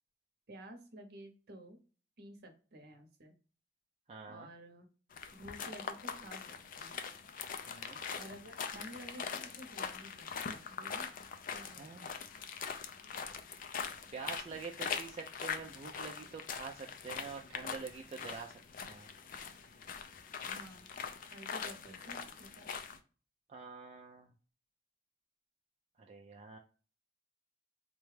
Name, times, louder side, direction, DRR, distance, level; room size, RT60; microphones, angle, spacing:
voice 1, 0.5-1.8 2.2-3.4 4.3-4.9 5.3-6.5 6.7-7.0 8.1-11.1 11.5-11.9 20.4-20.9 21.3-22.7, right 1 dB, 60° right, 4 dB, 0.8 m, -52 dB
voice 2, 4.1-4.5 7.7-8.0 11.8-12.1 14.1-19.1 23.5-24.3 26.0-26.6, right 5 dB, 35° right, 1 dB, 0.4 m, -46 dB
sound 1, 5.1-23.0, left 6 dB, 50° left, 0.4 m, -43 dB
4.1 x 2.3 x 3.1 m, 0.38 s
head